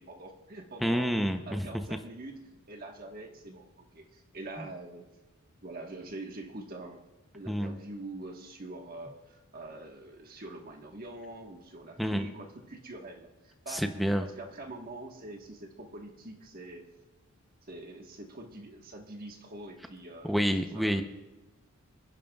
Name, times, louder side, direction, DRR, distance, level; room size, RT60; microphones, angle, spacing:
voice 1, 0.0-1.1 1.4-5.1 5.6-7.0 7.3-16.8 17.7-20.4 20.7-21.0, right 2 dB, 45° right, 3 dB, 1.4 m, -44 dB
voice 2, 0.8-1.7 7.5-7.7 12.0-12.3 13.7-14.2 20.2-21.0, equal, ahead, 5 dB, 0.6 m, -28 dB
26.5 x 10.5 x 2.4 m, 1.1 s
head